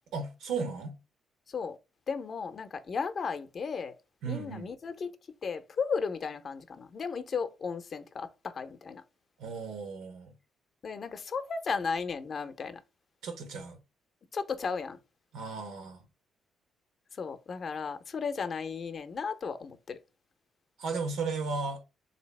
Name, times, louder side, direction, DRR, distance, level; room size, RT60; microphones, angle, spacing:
voice 1, 0.1-0.9 4.2-4.7 9.4-10.3 13.2-13.8 15.3-16.0 20.8-21.8, right 4 dB, 85° right, 0.9 m, -35 dB
voice 2, 2.1-3.9 4.3-5.1 5.4-9.0 10.8-12.8 14.3-15.0 17.2-20.0, left 5 dB, 50° left, 0.5 m, -35 dB
3.3 x 2.7 x 3.2 m
cardioid pair, 90°, 0 cm